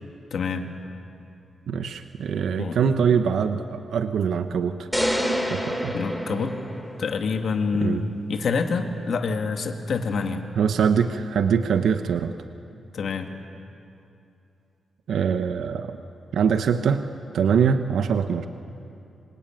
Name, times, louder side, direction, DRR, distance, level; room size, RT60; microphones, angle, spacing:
voice 1, 0.3-0.7 2.6-2.8 5.9-6.6 7.0-10.4 12.9-13.3, left 4 dB, 65° left, 5 dB, 2.1 m, -26 dB
voice 2, 1.7-4.9 5.5-5.9 7.8-8.0 10.6-12.3 15.1-16.0 16.3-17.0 17.3-18.5, right 7 dB, 85° right, 8 dB, 1.0 m, -23 dB
sound 1, 4.9-7.2, equal, ahead, 2.6 m, -27 dB
27.5 x 23.5 x 9.1 m, 2.7 s
wide cardioid pair, 135°, 0 cm